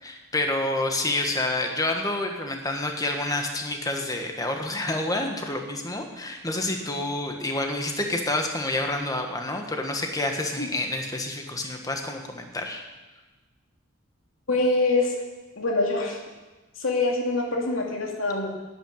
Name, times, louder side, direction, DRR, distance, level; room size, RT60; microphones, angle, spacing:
voice 1, 0.0-12.8, left 2 dB, 20° left, 3 dB, 1.5 m, -28 dB
voice 2, 14.5-15.1 15.6-16.2 16.8-18.5, left 2 dB, 90° left, 0 dB, 2.6 m, -24 dB
11.5 x 8.7 x 9.1 m, 1.2 s
head